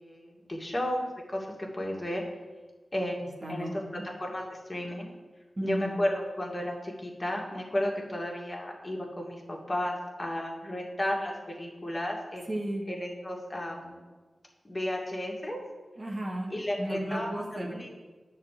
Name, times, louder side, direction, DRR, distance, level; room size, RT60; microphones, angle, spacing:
voice 1, 0.0-2.2 2.9-5.1 5.6-12.5 12.9-14.0 14.6-15.6 16.5-17.3 17.7-18.0, left 1 dB, 30° left, -1 dB, 2.4 m, -33 dB
voice 2, 3.4-4.1 5.6-6.0 12.5-12.9 16.0-17.9, right 1 dB, 45° right, -1 dB, 1.9 m, -34 dB
9.7 x 4.4 x 7.6 m, 1.3 s
cardioid pair, 45°, 0 cm